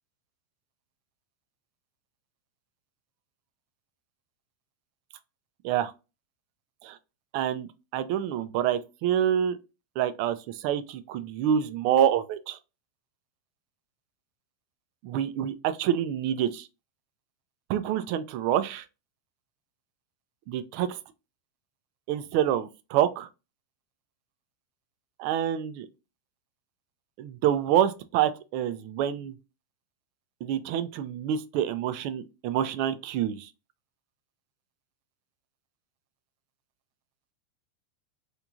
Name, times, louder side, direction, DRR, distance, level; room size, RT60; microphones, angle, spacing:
voice 1, 7.3-9.6 10.0-12.6 15.0-16.7 17.7-18.8 20.5-21.0 22.1-23.3 25.2-25.9 27.2-29.3 30.4-33.5, right 10 dB, 55° right, 0.4 m, -27 dB
3.0 x 2.5 x 2.3 m
supercardioid pair, 130°, 0 cm